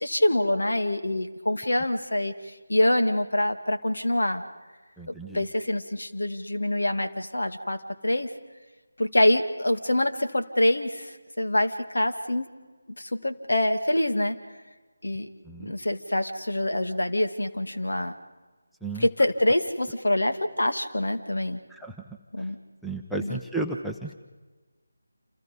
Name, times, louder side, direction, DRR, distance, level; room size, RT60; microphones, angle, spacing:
voice 1, 0.0-2.3 2.7-4.4 5.1-8.3 9.0-12.5 13.0-14.4 15.0-15.3 15.6-18.1 19.0-21.6 22.3-22.6 23.2-23.4, left 1 dB, 65° left, 7 dB, 2.2 m, -25 dB
voice 2, 5.0-5.5 15.4-15.7 18.8-19.1 21.7-21.9 22.4-22.5 22.8-24.1, right 2 dB, ahead, 0 dB, 0.9 m, -33 dB
28.5 x 28.0 x 5.3 m, 1.3 s
figure-of-eight pair, 160°, 0 cm